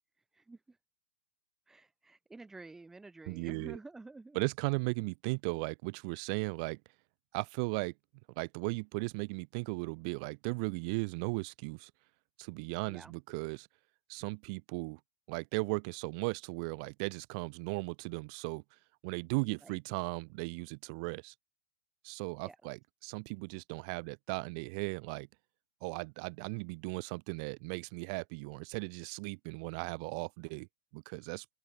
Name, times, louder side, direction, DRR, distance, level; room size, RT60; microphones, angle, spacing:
voice 1, 0.2-0.8 1.7-4.4 12.9-13.1 19.6-19.8 22.4-22.6, right 3 dB, 5° right, 1.5 m, -51 dB
voice 2, 3.3-3.8 4.3-6.8 7.3-7.9 8.4-11.9 12.4-13.7 14.1-15.0 15.3-18.6 19.0-21.3 22.0-25.3 25.8-30.7 30.9-31.4, right 32 dB, 50° right, 1.1 m, -37 dB
open air
hypercardioid pair, 130°, 5 cm